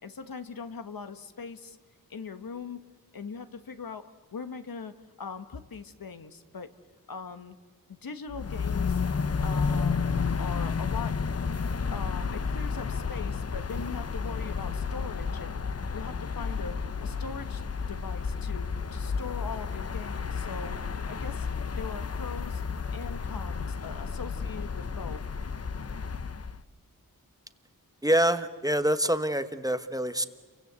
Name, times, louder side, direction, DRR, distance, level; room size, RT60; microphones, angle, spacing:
voice 1, 0.0-1.8 2.1-2.8 3.1-6.7 7.1-7.5 7.9-9.0 9.4-11.2 11.9-15.6 15.9-17.6 17.9-20.8 21.1-21.5 21.8-22.6 22.9-25.2, left 5 dB, 70° left, 9 dB, 1.5 m, -41 dB
sound 1, 8.3-26.6, left 5 dB, 45° left, 0.8 m, -31 dB
voice 2, 28.0-30.3, right 1 dB, 10° right, 10 dB, 1.2 m, -26 dB
30.0 x 24.0 x 8.2 m, 1.4 s
wide cardioid pair, 90°, 36 cm